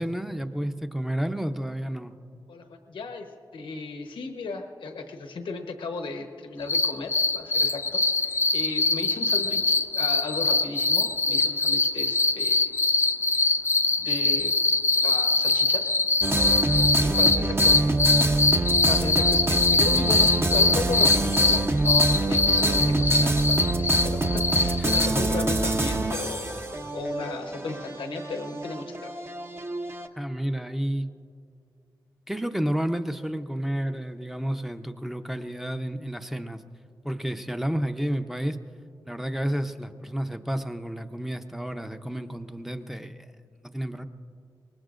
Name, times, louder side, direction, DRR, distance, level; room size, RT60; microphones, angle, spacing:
voice 1, 0.0-2.1 24.9-25.2 30.2-31.1 32.3-36.6 37.0-38.6 39.0-43.3 43.6-44.0, right 1 dB, 5° right, 8 dB, 0.7 m, -31 dB
voice 2, 2.5-12.6 13.3-13.5 14.0-14.5 15.0-16.0 17.0-17.8 18.9-29.1, left 3 dB, 90° left, 5 dB, 1.1 m, -35 dB
sound 1, 6.6-25.1, left 3 dB, 35° left, 0.5 m, -23 dB
sound 2, 16.2-30.1, right 2 dB, 30° right, 0.9 m, -26 dB
23.5 x 19.5 x 2.5 m, 2.4 s
cardioid pair, 65°, 8 cm